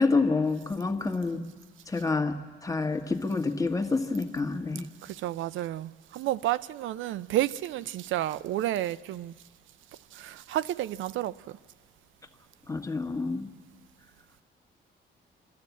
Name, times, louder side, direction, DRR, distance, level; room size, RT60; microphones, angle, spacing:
voice 1, 0.0-1.4 1.9-4.9 12.7-13.5, left 3 dB, 15° left, 1.6 m, -28 dB
voice 2, 5.0-9.3 10.1-11.6, right 13 dB, 80° right, 0.5 m, -31 dB
26.0 x 12.0 x 8.3 m
cardioid pair, 90°, 20 cm